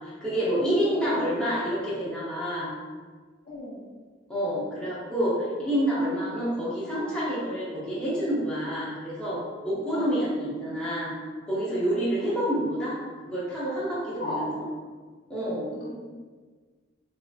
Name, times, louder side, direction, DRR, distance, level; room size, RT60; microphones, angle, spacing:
voice 1, 0.0-2.7 4.3-11.1 11.5-13.0 13.2-14.5 15.3-15.6, equal, 5° left, -9 dB, 0.8 m, -28 dB
voice 2, 0.6-1.5 3.4-3.9 9.8-10.2 10.5-10.7 11.9-12.1 14.1-14.6 15.7-15.9, left 1 dB, 45° left, -5 dB, 0.5 m, -36 dB
3.3 x 2.9 x 2.4 m, 1.5 s
head